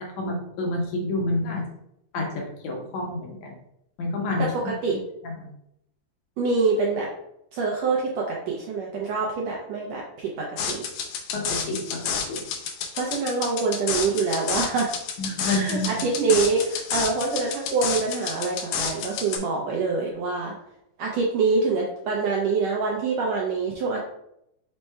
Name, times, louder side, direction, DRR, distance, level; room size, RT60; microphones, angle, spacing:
voice 1, 0.0-1.6 2.1-3.5 4.0-4.5 5.2-5.4 11.3-12.4 15.2-16.0, left 2 dB, 70° left, 0 dB, 1.8 m, -28 dB
voice 2, 4.6-5.0 6.4-7.1 7.5-10.0 10.4-10.8 13.0-15.0 15.4-20.5 21.0-24.0, right 4 dB, 80° right, -2 dB, 1.5 m, -25 dB
sound 1, 10.6-19.4, left 6 dB, 90° left, 1.4 m, -30 dB
5.4 x 2.1 x 4.4 m, 0.79 s
omnidirectional pair, 3.7 m